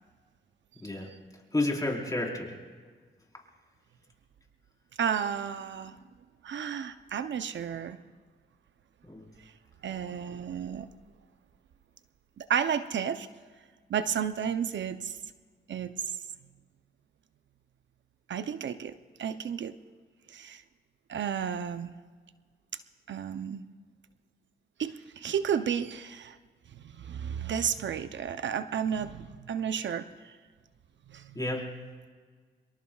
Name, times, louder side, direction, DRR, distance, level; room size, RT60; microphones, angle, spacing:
voice 1, 1.5-2.6 9.0-9.3 31.3-31.7, left 2 dB, 20° left, -1 dB, 4.2 m, -30 dB
voice 2, 5.0-6.0 6.4-8.0 9.8-10.9 12.4-13.3 13.9-15.2 15.7-15.9 18.3-19.8 20.3-20.6 21.1-21.9 23.1-23.7 24.8-26.4 26.8-30.3 31.1-31.3, right 8 dB, 70° right, 11 dB, 0.6 m, -32 dB
25.5 x 22.5 x 2.4 m, 1.6 s
cardioid pair, 60°, 19 cm